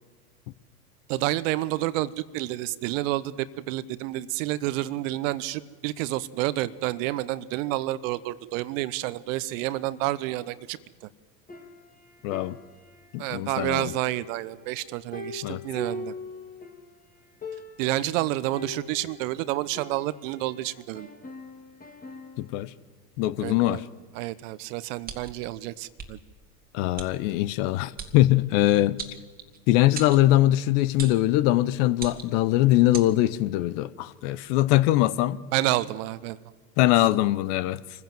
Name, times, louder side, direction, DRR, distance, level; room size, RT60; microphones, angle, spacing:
voice 1, 1.1-10.8 13.2-16.1 17.8-21.1 23.4-23.8 24.1-26.2 35.5-36.4, right 16 dB, 55° right, 1.0 m, -29 dB
sound 1, 11.5-13.2 13.6-16.9 17.1-17.2 17.4-18.0 18.5-20.5 20.9-22.6, left 2 dB, 20° left, 2.3 m, -41 dB
voice 2, 12.2-12.6 13.1-13.9 15.4-15.6 22.4-22.7 23.2-23.8 26.7-29.0 29.7-35.4 36.8-37.8, left 15 dB, 50° left, 0.9 m, -22 dB
sound 2, 25.0-25.4 26.0-26.1 27.0-27.1 28.0-28.1 29.0-29.6 29.9-30.2 31.0-31.2 31.9-32.4 32.9-33.1, right 6 dB, 20° right, 2.0 m, -37 dB
25.5 x 15.5 x 7.6 m
hypercardioid pair, 85°, 46 cm